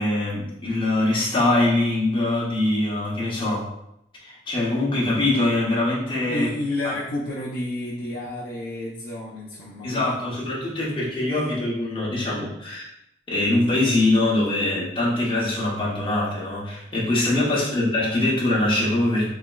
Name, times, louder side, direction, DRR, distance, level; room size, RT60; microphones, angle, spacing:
voice 1, 0.0-3.7 4.2-6.5 6.8-6.9 9.8-12.9 13.3-19.3, left 2 dB, 30° left, -6 dB, 0.9 m, -23 dB
voice 2, 6.3-10.3 17.4-17.8, left 1 dB, 55° left, -5 dB, 0.4 m, -31 dB
3.3 x 2.8 x 2.3 m, 0.81 s
head